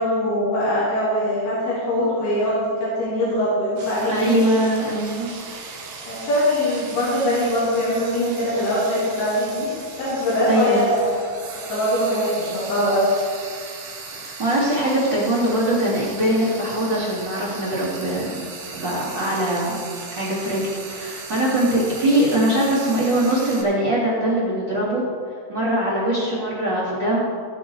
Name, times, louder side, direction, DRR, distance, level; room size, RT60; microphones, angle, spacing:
voice 1, 0.0-4.4 6.1-9.7 10.0-11.1 11.7-13.1, equal, 75° left, -9 dB, 5.2 m, -22 dB
Frying (food), 3.8-23.6, right 4 dB, 65° right, 3.0 m, -37 dB
voice 2, 4.1-5.3 10.5-10.8 14.1-18.4 18.7-19.8 20.2-25.0 25.5-27.2, right 1 dB, 30° right, -10 dB, 3.0 m, -22 dB
19.0 x 6.9 x 4.7 m, 2.1 s
omnidirectional pair, 4.5 m